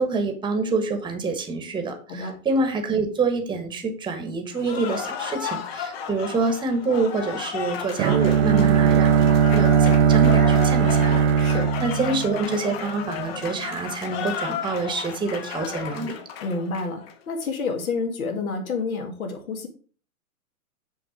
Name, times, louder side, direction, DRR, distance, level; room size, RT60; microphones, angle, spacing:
voice 1, 0.0-16.2, right 3 dB, 10° right, 6 dB, 1.2 m, -27 dB
Cheering / Applause, 4.5-17.1, left 7 dB, 45° left, 1.2 m, -33 dB
Bowed string instrument, 8.0-12.9, right 7 dB, 50° right, 0.5 m, -19 dB
voice 2, 8.5-9.1 11.4-11.7 16.4-19.7, left 4 dB, 70° left, 4 dB, 2.3 m, -29 dB
7.0 x 5.2 x 5.1 m, 0.40 s
hypercardioid pair, 125°, 44 cm